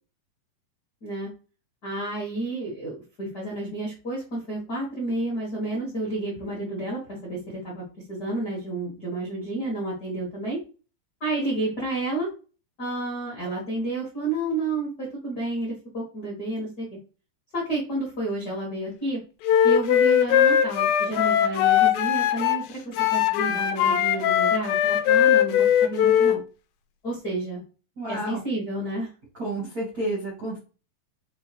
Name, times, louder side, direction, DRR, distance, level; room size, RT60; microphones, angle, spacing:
voice 1, 1.8-10.6 11.2-12.3 12.8-16.9 17.5-19.2 19.6-22.6 23.1-26.4 27.0-27.6 28.1-29.1, right 2 dB, 60° left, -5 dB, 0.9 m, -30 dB
Wind instrument woodwind instrument, 19.4-22.6 23.0-26.4, left 10 dB, 85° left, 2.3 m, -20 dB
voice 2, 28.0-28.4 29.4-30.6, right 1 dB, 85° right, -3 dB, 0.8 m, -30 dB
5.5 x 2.8 x 2.9 m, 0.35 s
omnidirectional pair, 4.0 m